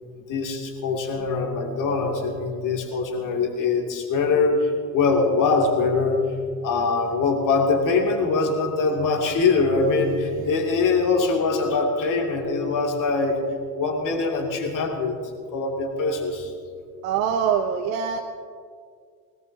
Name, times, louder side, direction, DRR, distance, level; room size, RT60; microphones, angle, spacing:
voice 1, 0.2-6.2 6.6-13.4 13.7-15.2 15.5-16.5, left 4 dB, 40° left, 2 dB, 2.4 m, -23 dB
voice 2, 17.0-18.2, right 7 dB, 60° right, 5 dB, 0.9 m, -23 dB
21.0 x 18.5 x 2.7 m, 2.1 s
figure-of-eight pair, 60°, 47 cm